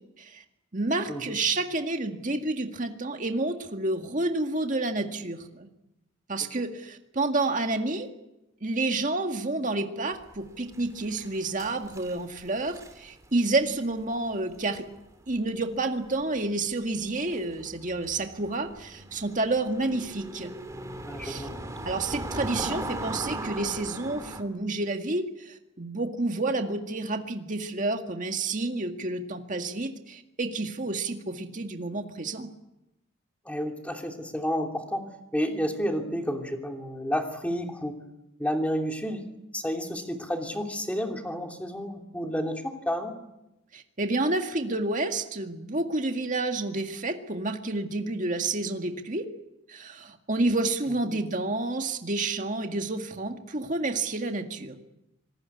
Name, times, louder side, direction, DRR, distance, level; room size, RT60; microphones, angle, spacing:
voice 1, 0.7-5.7 6.3-8.1 8.6-14.9 15.3-20.5 21.2-21.5 21.9-32.5 43.7-49.3 49.7-54.8, right 2 dB, 40° right, 5 dB, 1.9 m, -29 dB
sound 1, 10.2-15.8 16.0-16.2 16.9-24.4, right 1 dB, 15° right, 2.4 m, -39 dB
voice 2, 21.1-21.6 33.4-35.1 35.3-38.0 38.4-39.3 39.5-43.1 51.1-51.2, equal, 5° left, 3 dB, 3.0 m, -30 dB
26.0 x 19.5 x 8.5 m, 0.89 s
head